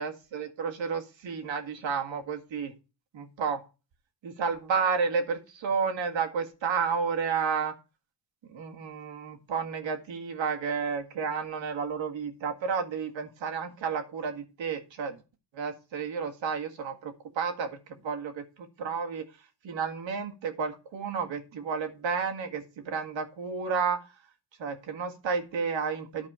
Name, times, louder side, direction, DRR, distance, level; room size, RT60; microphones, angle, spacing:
voice 1, 0.0-2.7 3.1-3.6 4.2-7.8 8.5-15.2 15.5-17.8 18.0-19.3 19.6-24.0 24.6-26.3, right 5 dB, 60° right, 4 dB, 1.9 m, -31 dB
11.0 x 4.2 x 6.9 m, 0.31 s
cardioid pair, 85°, 50 cm